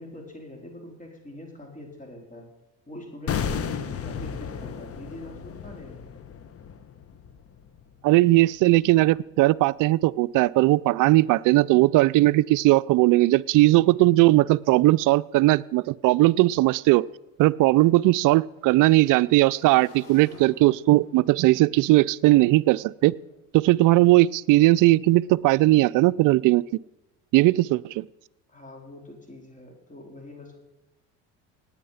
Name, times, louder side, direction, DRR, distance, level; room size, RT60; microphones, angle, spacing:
voice 1, 0.0-2.5 2.9-6.0 28.5-30.6, left 1 dB, 20° left, 2 dB, 4.2 m, -43 dB
sound 1, 3.3-8.3 8.5-8.7, left 7 dB, 40° left, 1.2 m, -34 dB
voice 2, 8.0-17.0 17.4-23.1 23.5-26.6 27.3-28.0, right 18 dB, 60° right, 18 dB, 0.5 m, -19 dB
Motorcycle / Engine, 16.4-23.3, left 2 dB, 85° left, 6.2 m, -54 dB
18.0 x 9.4 x 5.7 m, 0.94 s
supercardioid pair, 95°, 36 cm